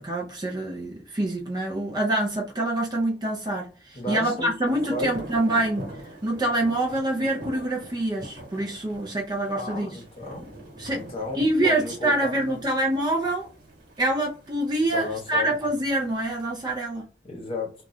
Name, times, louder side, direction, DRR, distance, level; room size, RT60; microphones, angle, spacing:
voice 1, 0.0-5.9 6.2-10.0 10.8-11.0 11.3-13.5 14.0-17.1, right 1 dB, 25° right, 0.5 m, -26 dB
voice 2, 3.9-4.5 4.9-5.1 9.5-10.5 10.9-12.6 14.9-15.5 17.2-17.7, left 2 dB, 30° left, 1.0 m, -33 dB
sound 1, 4.6-16.8, right 1 dB, 60° right, 1.3 m, -44 dB
3.0 x 2.3 x 2.5 m
head